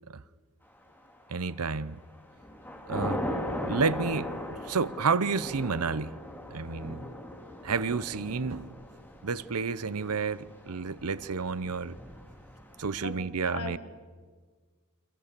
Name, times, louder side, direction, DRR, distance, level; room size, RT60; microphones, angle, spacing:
Thunder / Rain, 1.1-1.6 2.0-13.2, left 1 dB, 10° left, 3.3 m, -39 dB
voice 1, 1.3-2.0 2.9-3.3 3.7-6.2 6.5-7.0 7.6-8.7 9.2-12.0 12.8-13.8, right 5 dB, 80° right, 0.8 m, -30 dB
voice 2, 13.0-13.8, left 3 dB, 80° left, 3.7 m, -39 dB
30.0 x 25.0 x 6.8 m
head